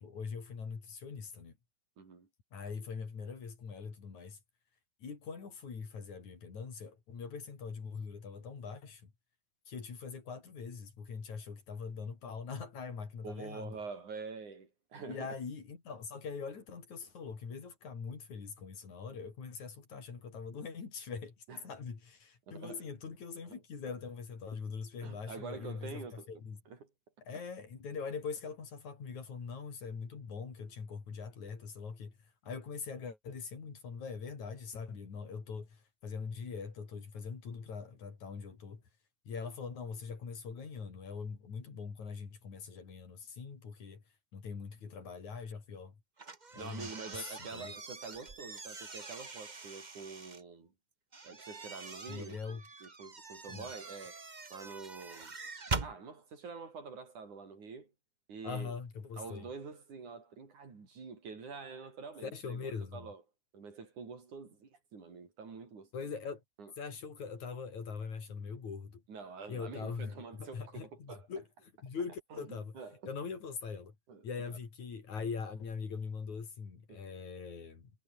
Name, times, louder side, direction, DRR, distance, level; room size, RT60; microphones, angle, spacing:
voice 1, 0.0-1.6 2.5-4.4 5.0-9.1 9.7-13.8 15.1-21.4 21.6-26.6 27.3-32.2 32.4-38.8 39.3-44.0 44.3-46.0 46.5-47.8 52.1-52.6 53.5-53.7 58.4-59.5 62.2-63.1 65.9-66.4 66.8-69.0 69.5-71.5 71.8-72.8 73.0-73.9 74.2-77.9, left 5 dB, 65° left, 5.5 m, -42 dB
voice 2, 2.0-2.3 13.2-15.4 21.5-21.6 22.5-22.9 23.5-23.6 25.0-26.3 26.7-26.9 46.6-50.7 51.2-54.2 54.5-55.4 55.8-57.9 58.3-58.7 59.2-62.6 62.9-63.2 63.5-66.1 66.6-66.7 69.1-71.3 72.3-73.0 74.1-74.6 76.9-77.1, right 5 dB, 70° right, 6.3 m, -47 dB
sound 1, 46.2-50.4 51.1-55.9, right 3 dB, 40° right, 0.6 m, -43 dB
omnidirectional pair, 3.6 m